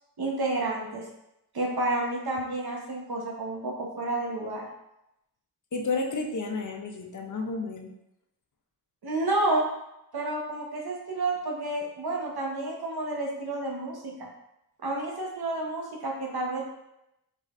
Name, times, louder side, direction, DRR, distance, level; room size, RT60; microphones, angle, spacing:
voice 1, 0.2-1.0 1.5-4.6 9.0-9.6 10.1-14.3 14.8-16.6, right 2 dB, 65° right, -1 dB, 0.9 m, -30 dB
voice 2, 5.7-7.9, left 3 dB, 50° left, 3 dB, 0.5 m, -31 dB
4.9 x 3.1 x 2.4 m, 0.86 s
wide cardioid pair, 90°, 40 cm